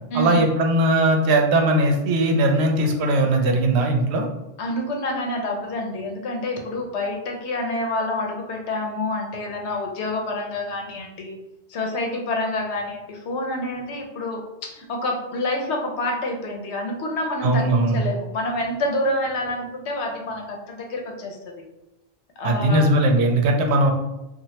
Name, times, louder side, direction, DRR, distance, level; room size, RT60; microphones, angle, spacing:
voice 1, 0.1-4.2 17.4-18.0 22.4-23.9, right 1 dB, 80° right, 3 dB, 0.8 m, -19 dB
voice 2, 4.6-11.3 11.7-17.6 17.9-21.6 22.4-22.9, left 1 dB, 90° left, 1 dB, 0.9 m, -28 dB
3.1 x 2.4 x 2.8 m, 0.97 s
omnidirectional pair, 1.1 m